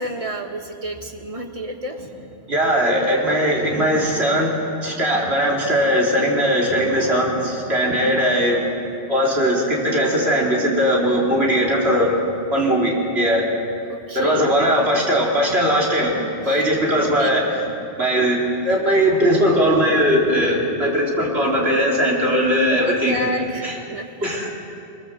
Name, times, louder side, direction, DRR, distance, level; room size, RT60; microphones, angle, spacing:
voice 1, 0.0-2.0 13.9-14.5 16.5-16.6 17.2-17.3 18.7-18.8 22.4-24.3, equal, 30° right, 3 dB, 1.7 m, -30 dB
voice 2, 2.5-8.6 9.1-12.1 12.5-13.5 14.2-17.6 18.0-23.2 23.6-23.8 24.2-24.5, equal, 75° right, -3 dB, 4.0 m, -19 dB
22.5 x 20.5 x 7.5 m, 2.6 s
omnidirectional pair, 1.1 m